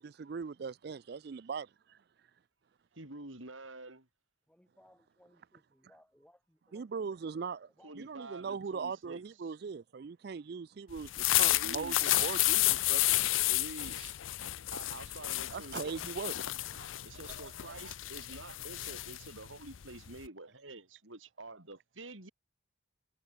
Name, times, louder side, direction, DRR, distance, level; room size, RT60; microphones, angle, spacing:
voice 1, 0.0-2.0 6.7-7.7 8.0-13.0 15.5-17.1 17.4-17.9, right 5 dB, 55° right, 0.4 m, -40 dB
voice 2, 3.0-4.1 7.8-9.5 11.5-12.3 13.5-14.2 14.4-16.0 17.0-22.3, right 2 dB, 80° right, 4.1 m, -48 dB
voice 3, 4.5-7.2 7.8-8.8, equal, 5° left, 3.6 m, -65 dB
sound 1, 11.0-20.3, left 17 dB, 80° left, 0.5 m, -31 dB
head